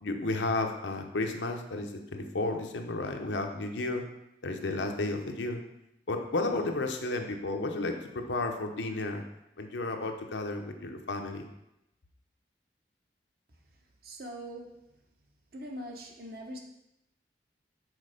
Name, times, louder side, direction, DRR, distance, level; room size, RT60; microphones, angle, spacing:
voice 1, 0.0-4.0 4.4-5.6 6.1-9.2 9.6-11.5, left 2 dB, 85° left, 4 dB, 0.8 m, -32 dB
voice 2, 14.0-14.7 15.5-16.6, equal, 55° right, 2 dB, 1.0 m, -41 dB
6.3 x 4.2 x 5.0 m, 0.88 s
head